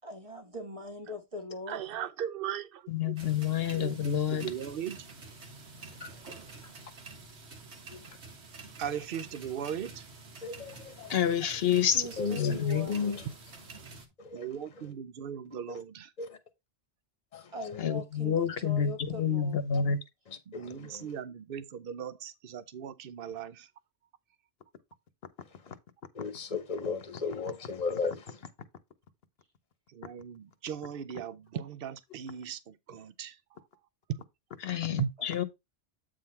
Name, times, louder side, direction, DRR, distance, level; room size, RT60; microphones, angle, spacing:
voice 1, 0.0-1.8 11.4-13.2 17.5-19.6, left 2 dB, 30° right, 1.3 m, -41 dB
voice 2, 1.7-3.1 3.7-5.1 8.8-10.0 14.3-16.1 20.5-23.7 29.9-33.4 34.1-34.2 34.9-35.1, right 9 dB, 60° right, 0.8 m, -38 dB
voice 3, 2.9-4.5 11.1-12.1 12.3-12.9 17.8-20.0 34.6-35.4, left 8 dB, 65° left, 1.1 m, -28 dB
sound 1, 3.2-14.1, right 3 dB, 80° right, 1.6 m, -48 dB
voice 4, 5.9-6.2 6.6-6.7 7.9-8.1 8.9-9.0 10.4-11.1 12.2-13.2 14.2-14.5 15.7-15.8 16.2-16.4 17.3-17.8 20.5-21.1 25.6-25.7 26.1-28.4, left 5 dB, 40° left, 1.0 m, -36 dB
8.3 x 3.8 x 4.3 m
omnidirectional pair, 1.1 m